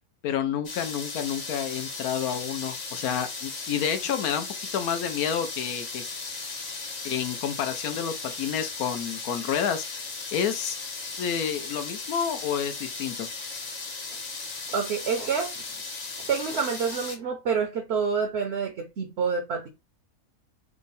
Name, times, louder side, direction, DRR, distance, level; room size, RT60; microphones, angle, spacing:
voice 1, 0.2-4.5 4.7-6.0 7.0-9.8 10.3-10.8 11.2-13.3, left 8 dB, 80° left, 1.1 m, -29 dB
sound 1, 0.6-17.2, left 4 dB, 40° left, 0.6 m, -36 dB
voice 2, 14.7-15.6 16.3-19.7, right 6 dB, 55° right, 0.8 m, -27 dB
3.5 x 2.1 x 3.9 m
omnidirectional pair, 1.6 m